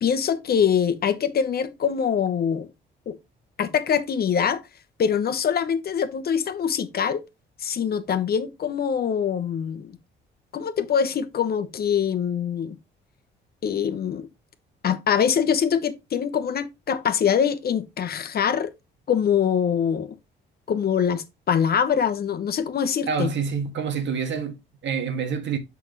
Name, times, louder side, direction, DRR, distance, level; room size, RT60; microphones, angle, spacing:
voice 1, 0.0-2.7 3.1-3.2 3.6-4.6 5.0-7.2 7.6-9.9 10.5-12.8 13.6-14.3 14.8-18.7 19.1-20.2 20.7-23.3, left 7 dB, 50° left, 0.8 m, -24 dB
voice 2, 23.1-25.6, right 6 dB, 65° right, 1.5 m, -27 dB
6.1 x 6.0 x 3.0 m
cardioid pair, 90°, 20 cm